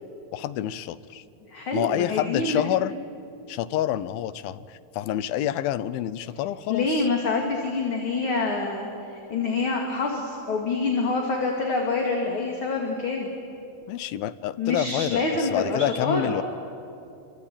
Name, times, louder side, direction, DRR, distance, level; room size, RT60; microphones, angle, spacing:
voice 1, 0.3-1.2 1.7-2.9 3.5-7.1 13.9-16.4, left 12 dB, 85° left, 16 dB, 2.6 m, -28 dB
voice 2, 1.4-2.6 6.7-13.3 14.6-16.4, left 3 dB, 40° left, 1 dB, 2.6 m, -26 dB
26.0 x 24.5 x 8.8 m, 2.6 s
omnidirectional pair, 4.1 m